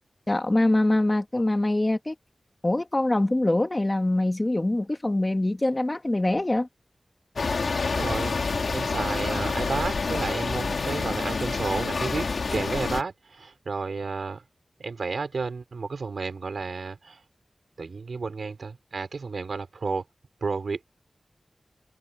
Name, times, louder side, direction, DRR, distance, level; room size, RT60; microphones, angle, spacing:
voice 1, 0.3-2.2 2.6-6.7, left 1 dB, 25° left, 1.8 m, -24 dB
sound 1, 7.4-13.0, left 4 dB, 85° left, 2.4 m, -28 dB
voice 2, 7.9-8.4 8.7-14.4 14.8-17.2 17.8-20.0 20.4-21.0, right 4 dB, 85° right, 5.2 m, -32 dB
wide cardioid pair, 80°, 0 cm